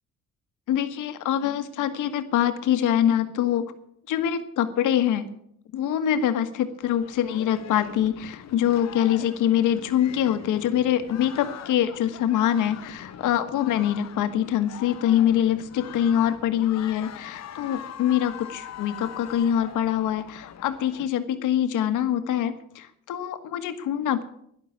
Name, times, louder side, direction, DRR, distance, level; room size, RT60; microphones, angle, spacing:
voice 1, 0.7-3.7 4.1-5.3 5.7-24.2, left 10 dB, 85° left, 9 dB, 1.6 m, -24 dB
sound 1, 6.8-21.1, left 9 dB, 60° left, 1.1 m, -42 dB
12.0 x 11.0 x 8.5 m, 0.71 s
cardioid pair, 90°, 30 cm